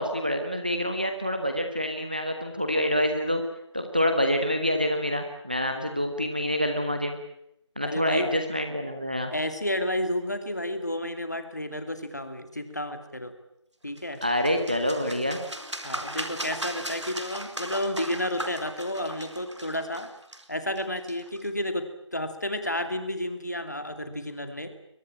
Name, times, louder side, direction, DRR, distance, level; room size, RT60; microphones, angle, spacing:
voice 1, 0.0-3.4 3.7-7.2 7.8-9.3 14.2-15.4, equal, 20° right, 6 dB, 1.2 m, -27 dB
voice 2, 7.8-8.4 9.3-13.3 13.8-14.2 15.8-20.1 20.5-24.7, left 1 dB, 35° left, 8 dB, 2.5 m, -31 dB
sound 1, 14.0-21.5, right 1 dB, 70° right, 4.3 m, -37 dB
23.0 x 20.0 x 8.9 m, 0.80 s
figure-of-eight pair, 180°, 15 cm